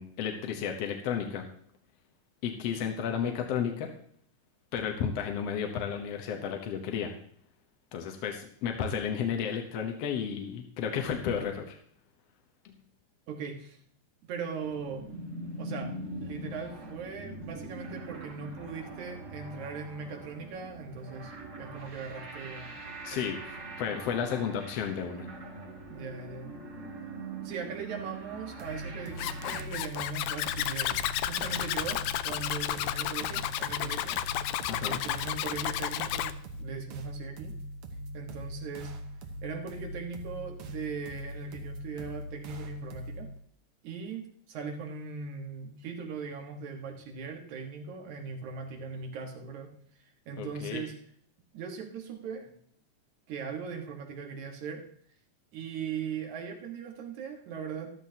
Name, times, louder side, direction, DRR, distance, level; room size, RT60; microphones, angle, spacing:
voice 1, 0.0-1.4 2.4-3.9 4.7-7.1 7.9-11.8 12.7-12.8 23.0-25.3 34.7-35.0 50.4-50.8, left 7 dB, 65° left, 3 dB, 1.9 m, -33 dB
voice 2, 13.3-13.8 14.3-15.1 15.6-22.7 23.1-23.2 25.9-26.5 27.4-31.0 31.3-34.2 34.8-36.3 36.6-37.6 38.1-38.9 39.4-43.3 43.8-49.7 50.3-50.9 51.5-52.5 53.3-54.8 55.5-57.9, right 5 dB, 75° right, 3 dB, 2.9 m, -39 dB
sound 1, 14.6-29.7, right 2 dB, 30° right, 1.8 m, -43 dB
sound 2, 28.6-43.4, right 1 dB, 60° right, 1.8 m, -42 dB
Zipper (clothing), 29.2-36.3, left 13 dB, 85° left, 2.1 m, -32 dB
14.0 x 12.5 x 2.8 m, 0.62 s
omnidirectional pair, 3.4 m